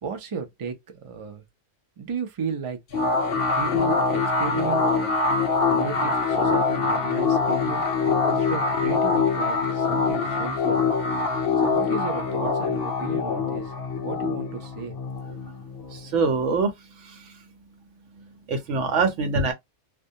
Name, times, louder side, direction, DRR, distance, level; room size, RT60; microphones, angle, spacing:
voice 1, 0.0-1.4 2.0-2.8 3.5-5.1 5.7-7.8 8.3-10.8 11.6-13.7 14.0-15.0 15.3-15.4, right 6 dB, 40° right, 0.4 m, -34 dB
sound 1, 2.9-16.1, left 4 dB, 60° left, 0.7 m, -24 dB
voice 2, 15.9-16.7 17.0-17.2 18.5-19.5, right 4 dB, 75° right, 1.0 m, -24 dB
2.3 x 2.1 x 2.7 m
omnidirectional pair, 1.3 m